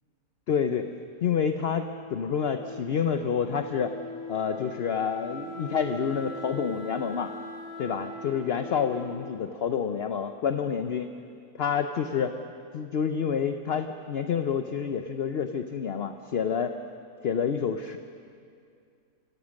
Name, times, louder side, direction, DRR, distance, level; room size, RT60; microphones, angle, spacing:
voice 1, 0.5-0.9 1.2-3.9 4.3-7.3 7.8-11.1 11.6-12.3 12.7-16.8 17.2-18.0, left 7 dB, 55° left, 8 dB, 0.7 m, -28 dB
Wind instrument woodwind instrument, 1.6-10.3, left 1 dB, 75° right, 5.2 m, -42 dB
25.5 x 16.5 x 6.4 m, 2.3 s
omnidirectional pair, 1.8 m